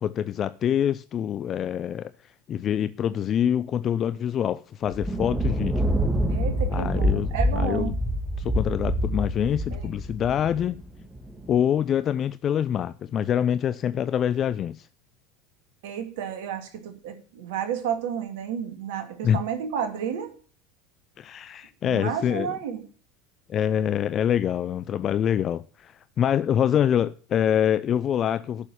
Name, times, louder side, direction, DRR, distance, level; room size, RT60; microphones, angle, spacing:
voice 1, 0.0-2.1 2.5-5.9 6.7-8.0 8.4-10.8 11.5-14.9 19.2-19.4 21.2-22.5 23.5-28.7, left 9 dB, 40° left, 0.5 m, -25 dB
Thunder, 4.8-11.5, equal, 15° right, 2.8 m, -26 dB
voice 2, 6.3-7.9 9.7-9.8 15.8-20.3 21.8-22.8, right 8 dB, 65° right, 2.3 m, -31 dB
11.5 x 6.8 x 7.2 m
figure-of-eight pair, 75°, 0 cm